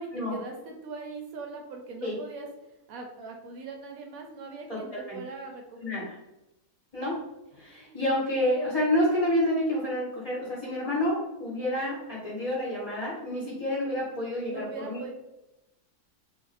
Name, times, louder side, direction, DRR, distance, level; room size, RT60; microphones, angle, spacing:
voice 1, 0.0-2.5 2.9-6.0 7.6-8.0 13.4-13.6 14.5-15.1, right 4 dB, 75° right, 2 dB, 1.0 m, -41 dB
voice 2, 4.7-5.2 5.8-6.2 6.9-7.2 7.5-15.0, left 1 dB, 30° left, -7 dB, 0.7 m, -29 dB
2.6 x 2.4 x 4.0 m, 0.94 s
omnidirectional pair, 1.6 m